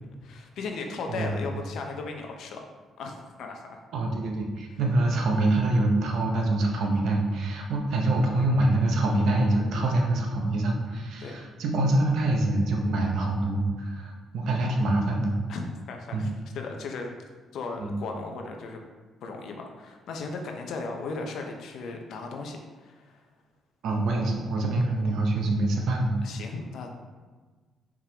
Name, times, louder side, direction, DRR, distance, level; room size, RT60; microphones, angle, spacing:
voice 1, 0.2-2.6 3.0-3.8 11.2-11.4 15.5-17.1 17.5-18.8 19.2-23.3 26.2-26.9, left 3 dB, 75° left, 3 dB, 0.6 m, -36 dB
voice 2, 3.9-15.4 16.1-16.2 17.8-17.9 23.8-26.2, right 2 dB, 75° right, 1 dB, 0.8 m, -25 dB
4.7 x 3.6 x 2.9 m, 1.4 s
cardioid pair, 90°, 0 cm